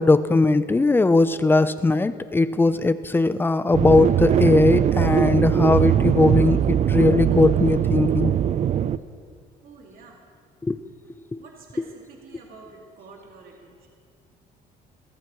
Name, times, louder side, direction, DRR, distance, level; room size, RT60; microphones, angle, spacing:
voice 1, 0.0-8.3 10.6-10.8 11.3-11.4 11.8-11.9, left 3 dB, 10° left, 13 dB, 0.5 m, -19 dB
sound 1, 3.7-9.0, right 10 dB, 45° right, 0.4 m, -21 dB
voice 2, 9.6-10.2 11.4-13.9, right 4 dB, 60° right, -1 dB, 2.2 m, -47 dB
22.5 x 14.5 x 3.1 m, 2.1 s
cardioid pair, 110°, 17 cm